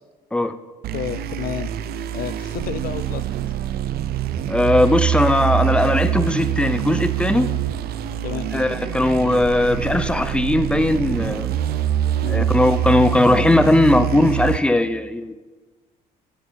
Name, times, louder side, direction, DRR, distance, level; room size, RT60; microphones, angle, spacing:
sound 1, 0.8-14.6, right 11 dB, 65° right, 0.6 m, -24 dB
voice 1, 0.9-1.7 2.1-3.3 8.2-8.5 12.2-12.5, left 10 dB, 60° left, 16 dB, 0.6 m, -30 dB
voice 2, 4.5-7.5 8.5-11.5 12.3-15.3, left 1 dB, 5° left, 11 dB, 0.6 m, -18 dB
13.5 x 6.4 x 4.6 m, 1.3 s
cardioid pair, 110°, 17 cm